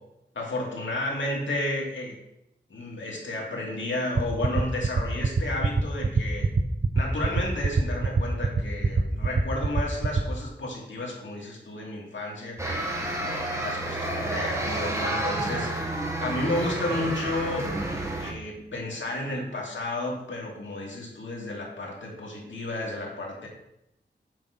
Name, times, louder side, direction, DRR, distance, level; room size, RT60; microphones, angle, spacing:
voice 1, 0.4-2.1 2.7-6.5 6.9-12.6 13.2-15.7 16.2-17.7 18.2-23.5, left 1 dB, 80° left, -2 dB, 2.2 m, -32 dB
sound 1, 4.2-10.2, right 4 dB, 45° right, 0.6 m, -22 dB
sound 2, 12.6-18.3, right 1 dB, 15° right, 1.4 m, -30 dB
7.6 x 4.9 x 5.8 m, 0.86 s
wide cardioid pair, 85°, 19 cm